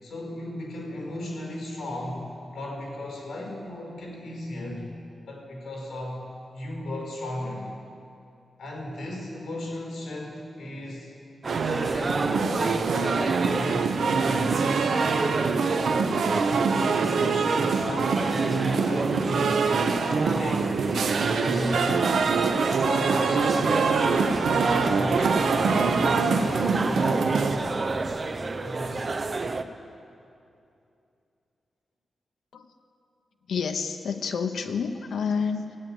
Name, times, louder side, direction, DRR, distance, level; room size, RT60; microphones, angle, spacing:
voice 1, 0.0-4.9 5.3-6.2 6.5-7.7 8.6-11.2 11.6-14.6 16.5-19.7 20.1-20.8 21.2-21.9 22.6-24.0 24.4-27.6 28.6-29.2, left 1 dB, 70° left, -1 dB, 4.6 m, -35 dB
sound 1, 11.4-29.6, right 3 dB, 30° right, 0.5 m, -30 dB
sound 2, 11.5-27.6, right 5 dB, 80° right, 0.9 m, -25 dB
voice 2, 33.5-35.8, left 6 dB, 85° left, 5 dB, 0.8 m, -29 dB
16.5 x 8.9 x 9.1 m, 2.6 s
wide cardioid pair, 170°, 0 cm